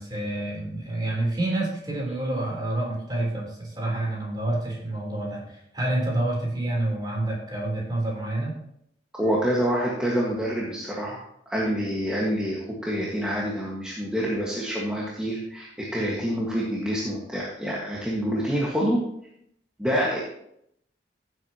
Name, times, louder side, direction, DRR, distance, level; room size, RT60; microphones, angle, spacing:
voice 1, 0.0-8.5, right 1 dB, 25° right, -2 dB, 3.7 m, -28 dB
voice 2, 9.2-11.2 11.5-19.0 19.8-20.2, equal, 5° right, -6 dB, 1.7 m, -27 dB
16.0 x 8.1 x 3.0 m, 0.73 s
head